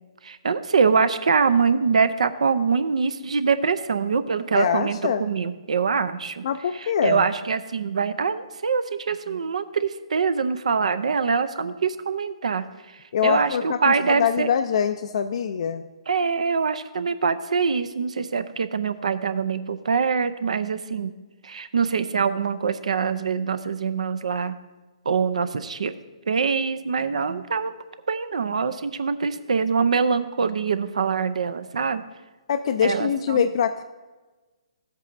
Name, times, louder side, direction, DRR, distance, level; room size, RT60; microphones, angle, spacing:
voice 1, 0.2-6.4 7.0-12.6 13.2-14.5 16.1-21.1 21.4-24.6 25.1-25.9 26.3-27.7 28.1-32.0 32.8-33.5, right 5 dB, 75° right, 12 dB, 0.5 m, -24 dB
voice 2, 4.6-5.2 6.4-7.2 13.1-15.8 32.5-33.8, left 7 dB, 55° left, 8 dB, 0.4 m, -24 dB
14.5 x 8.1 x 2.6 m, 1.3 s
hypercardioid pair, 140°, 4 cm